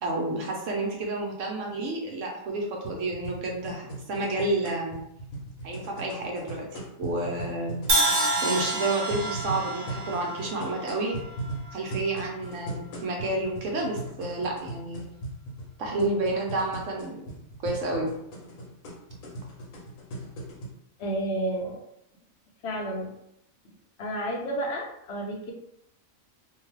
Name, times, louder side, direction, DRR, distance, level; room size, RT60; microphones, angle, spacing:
voice 1, 0.0-5.0 5.6-7.8 8.4-11.2 11.7-15.0 15.8-17.2 17.6-18.1, right 2 dB, 70° right, 0 dB, 1.0 m, -30 dB
sound 1, 2.8-20.7, right 1 dB, 80° left, 1.1 m, -39 dB
Crash cymbal, 7.9-11.9, right 2 dB, 50° right, 0.5 m, -28 dB
voice 2, 21.0-21.8 22.6-23.1 24.0-25.5, right 1 dB, 60° left, -1 dB, 0.9 m, -31 dB
2.7 x 2.3 x 3.1 m, 0.78 s
omnidirectional pair, 1.4 m